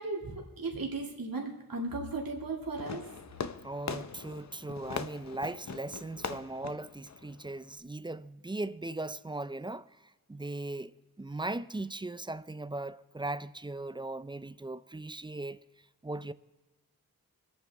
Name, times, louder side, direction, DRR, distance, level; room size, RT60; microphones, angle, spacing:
voice 1, 0.0-3.0, right 3 dB, 65° right, 2.2 m, -36 dB
Fireworks, 2.8-7.8, left 5 dB, 45° left, 0.7 m, -41 dB
voice 2, 3.6-9.9 10.3-10.9 11.2-15.6 16.0-16.3, right 2 dB, 15° right, 0.4 m, -38 dB
22.0 x 9.0 x 3.4 m
cardioid pair, 45°, 38 cm